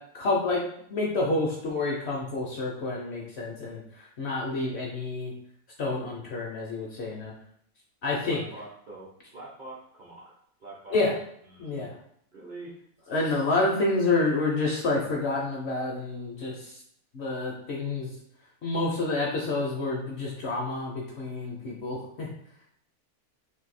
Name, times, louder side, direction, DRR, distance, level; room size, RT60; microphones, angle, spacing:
voice 1, 0.1-0.6 0.9-5.3 5.8-7.3 8.0-8.4 10.9-11.2 11.6-12.0 13.1-16.8 17.1-18.2 18.6-22.3, left 2 dB, 60° left, -2 dB, 0.7 m, -28 dB
voice 2, 8.2-10.3 10.6-11.0 11.4-11.9 12.3-12.7, right 2 dB, 50° right, -5 dB, 0.6 m, -44 dB
2.7 x 2.6 x 4.0 m, 0.68 s
omnidirectional pair, 1.5 m